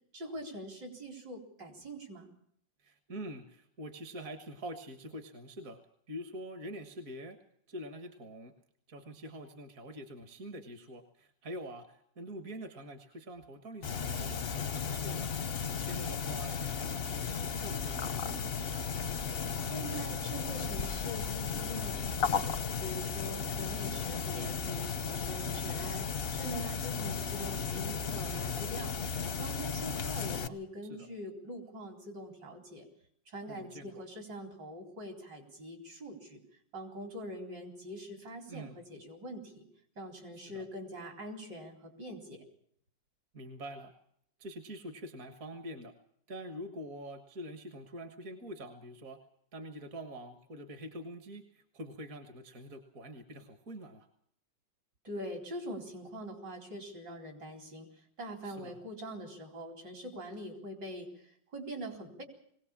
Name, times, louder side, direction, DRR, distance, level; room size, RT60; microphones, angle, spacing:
voice 1, 0.1-2.3 19.6-22.5 22.8-28.9 29.3-32.9 33.3-36.4 36.7-39.6 40.0-42.4 55.0-57.9 58.2-62.2, equal, 65° right, 3 dB, 4.9 m, -44 dB
voice 2, 2.8-5.8 6.1-7.4 7.7-8.5 8.9-15.3 15.7-18.5 23.8-24.1 28.3-28.5 30.5-30.6 30.8-31.1 33.5-34.0 38.5-38.8 40.5-40.6 43.3-43.9 44.4-45.9 46.3-49.2 49.5-54.1 58.4-58.8, equal, 50° right, 7 dB, 1.9 m, -45 dB
sound 1, 13.8-30.5, left 6 dB, 45° left, 0.8 m, -35 dB
21.5 x 18.0 x 7.4 m, 0.67 s
omnidirectional pair, 2.0 m